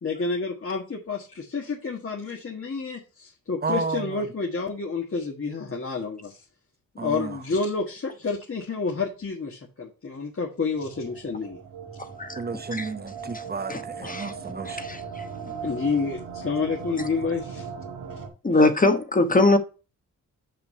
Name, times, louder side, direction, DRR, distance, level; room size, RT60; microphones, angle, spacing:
voice 1, 0.0-6.4 6.9-11.6 15.6-17.7 18.1-18.2 18.6-18.7, left 4 dB, 40° left, 1.7 m, -29 dB
voice 2, 3.6-4.0 7.0-7.2 12.4-13.7 14.0-14.8, right 4 dB, 30° right, 0.8 m, -31 dB
sound 1, 10.7-18.3, right 6 dB, 90° right, 2.0 m, -38 dB
voice 3, 13.7-14.3 14.6-15.2 17.0-17.1 18.4-19.6, left 2 dB, 25° left, 1.2 m, -22 dB
5.9 x 5.4 x 5.4 m
cardioid pair, 75°, 34 cm